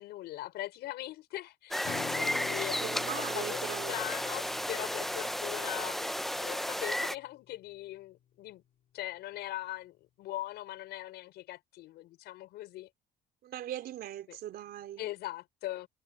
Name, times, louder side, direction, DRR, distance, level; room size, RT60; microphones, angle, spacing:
voice 1, 0.0-2.8 3.2-8.6 8.9-12.9 14.3-14.4 15.0-15.9, left 16 dB, 80° left, 5.6 m, -41 dB
sound 1, 1.7-7.2, equal, ahead, 0.5 m, -33 dB
Acoustic guitar / Strum, 1.8-7.3, left 10 dB, 60° left, 3.9 m, -48 dB
voice 2, 2.8-3.9 13.4-15.1, right 12 dB, 65° right, 4.3 m, -40 dB
cardioid pair, 110°, 17 cm